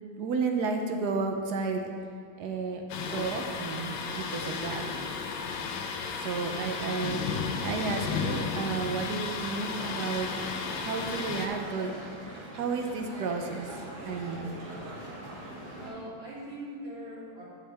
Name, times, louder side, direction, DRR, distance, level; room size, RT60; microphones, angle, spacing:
voice 1, 0.2-1.8 2.4-4.9 6.2-7.2 7.6-10.4 10.8-12.2 12.5-13.7 14.0-14.5, right 4 dB, 65° right, 3 dB, 1.1 m, -32 dB
Thunder, 2.9-11.5, left 5 dB, 70° left, 1.2 m, -34 dB
sound 1, 9.7-15.9, right 1 dB, 40° right, 2.0 m, -42 dB
voice 2, 15.7-17.4, equal, 90° right, -12 dB, 3.1 m, -41 dB
9.8 x 6.5 x 3.3 m, 2.3 s
omnidirectional pair, 2.1 m